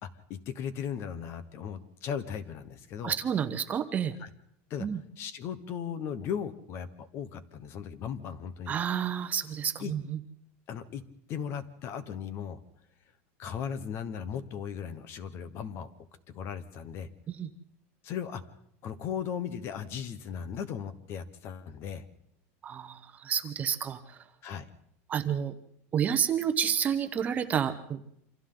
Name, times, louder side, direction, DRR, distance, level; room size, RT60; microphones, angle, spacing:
voice 1, 0.0-3.2 4.2-4.3 4.7-4.9 5.2-8.7 9.8-9.9 10.7-11.0 11.3-12.6 13.4-15.9 16.3-17.1 18.0-18.4 18.8-22.0 24.4-24.7, left 8 dB, 35° left, 13 dB, 1.1 m, -37 dB
voice 2, 3.0-4.1 4.8-5.0 8.7-10.2 17.3-17.5 22.6-24.2 25.1-25.5 25.9-28.0, right 8 dB, 20° right, 8 dB, 1.0 m, -30 dB
28.0 x 26.0 x 3.9 m, 0.74 s
supercardioid pair, 170°, 7 cm